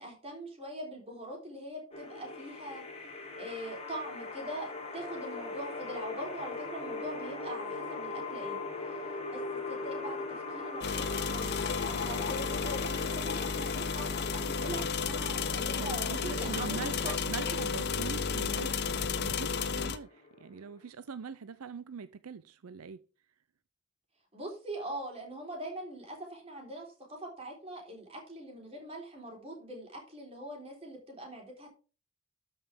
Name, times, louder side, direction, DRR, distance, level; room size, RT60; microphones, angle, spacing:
voice 1, 0.0-2.8 3.3-8.6 9.3-9.4 9.7-17.6 24.3-31.7, right 1 dB, 25° right, 3.9 m, -42 dB
sound 1, 1.9-20.9, left 3 dB, 30° left, 1.8 m, -41 dB
sound 2, 10.8-20.0, left 5 dB, 50° left, 0.7 m, -33 dB
voice 2, 15.7-23.0, right 5 dB, 80° right, 0.5 m, -43 dB
13.0 x 5.6 x 3.6 m
head